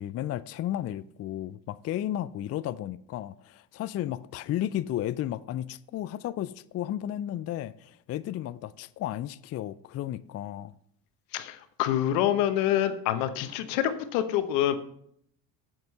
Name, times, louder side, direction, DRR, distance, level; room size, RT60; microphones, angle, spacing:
voice 1, 0.0-10.7, left 12 dB, 35° left, 0.4 m, -33 dB
voice 2, 11.3-14.7, left 11 dB, 80° left, 1.1 m, -26 dB
7.7 x 7.7 x 5.4 m
hypercardioid pair, 70°, 49 cm